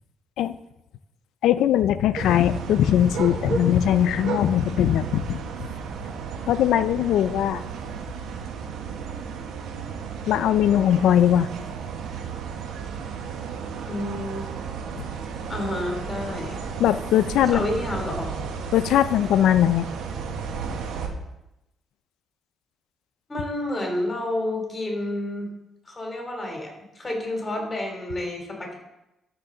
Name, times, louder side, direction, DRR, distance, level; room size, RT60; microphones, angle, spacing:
voice 1, 1.4-5.4 6.5-7.6 10.3-11.5 16.8-17.6 18.7-19.9, left 11 dB, 80° left, 13 dB, 0.5 m, -20 dB
sound 1, 2.2-21.1, right 6 dB, 80° right, 1.3 m, -33 dB
voice 2, 13.9-14.4 15.5-16.6 17.5-18.3 23.3-25.5 25.9-28.7, left 1 dB, 25° left, 1 dB, 3.2 m, -30 dB
12.5 x 6.6 x 3.9 m, 0.90 s
cardioid pair, 90°, 0 cm